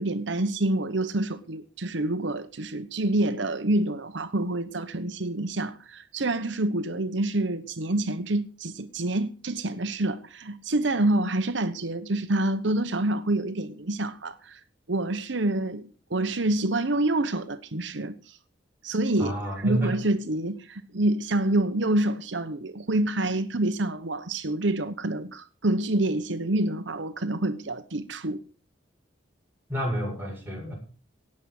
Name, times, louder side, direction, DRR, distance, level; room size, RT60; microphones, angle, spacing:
voice 1, 0.0-14.6 14.9-18.4 18.8-28.4, right 2 dB, 75° right, 1.0 m, -27 dB
voice 2, 19.2-20.0 29.7-30.7, equal, 10° right, 7.3 m, -29 dB
18.0 x 7.5 x 6.4 m
head